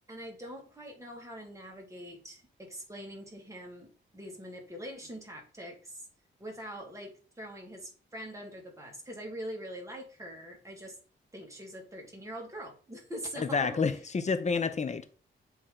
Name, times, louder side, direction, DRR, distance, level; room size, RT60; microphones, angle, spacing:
voice 1, 0.1-6.1 6.4-11.0 11.3-13.7, equal, 15° right, 2.3 m, -43 dB
voice 2, 13.4-15.1, left 5 dB, 35° left, 0.7 m, -29 dB
7.7 x 3.4 x 3.9 m
cardioid pair, 95°, 20 cm